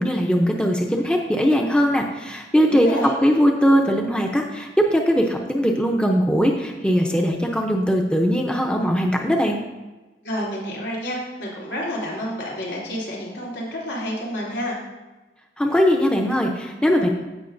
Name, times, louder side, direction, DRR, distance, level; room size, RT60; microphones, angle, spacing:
voice 1, 0.0-9.6 15.6-17.1, equal, 5° left, 1 dB, 0.6 m, -20 dB
voice 2, 2.7-3.1 10.2-14.8, equal, 85° left, -5 dB, 3.0 m, -29 dB
15.5 x 5.7 x 2.6 m, 1.1 s
head